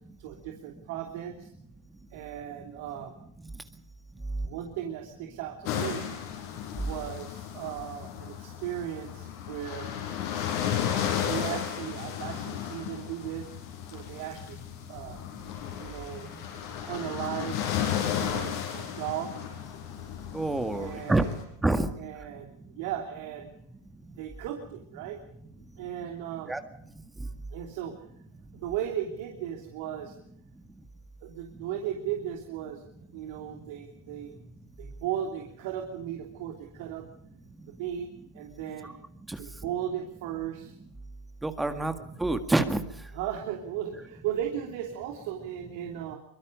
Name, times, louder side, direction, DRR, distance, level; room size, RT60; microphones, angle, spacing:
voice 1, 0.2-1.5 2.1-3.1 4.4-6.1 6.8-9.9 11.2-13.5 13.9-14.6 14.9-15.2 15.8-16.3 16.9-17.6 18.2-19.3 20.7-21.4 22.0-23.5 24.2-25.2 25.8-26.5 27.2-28.0 28.5-30.2 31.2-34.4 34.8-37.1 37.7-38.1 38.3-39.0 39.4-40.7 41.7-41.9 43.1-46.2, right 10 dB, 65° right, 2 dB, 3.0 m, -36 dB
sound 1, 5.7-21.4, left 9 dB, 60° left, 6.8 m, -34 dB
voice 2, 20.3-21.3 21.6-21.9 26.5-26.6 38.8-38.9 39.3-39.4 41.4-42.8, right 2 dB, 10° right, 8 dB, 1.9 m, -27 dB
24.0 x 22.5 x 5.2 m, 0.74 s
hypercardioid pair, 105°, 0 cm